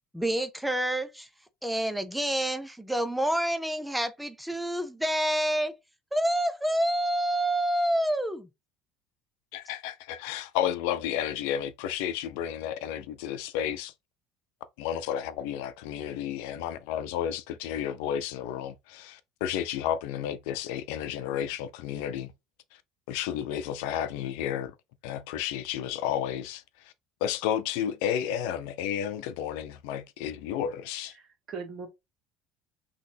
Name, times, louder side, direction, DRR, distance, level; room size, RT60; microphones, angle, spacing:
voice 1, 0.1-1.3 1.6-5.7 6.1-8.5, right 1 dB, ahead, 0.5 m, -28 dB
voice 2, 9.5-13.9 14.8-22.3 23.1-24.7 25.0-26.9 27.2-31.2, left 10 dB, 85° left, 0.7 m, -32 dB
voice 3, 31.0-31.9, right 5 dB, 35° right, 1.7 m, -40 dB
6.2 x 3.1 x 2.8 m
cardioid pair, 165°, 0 cm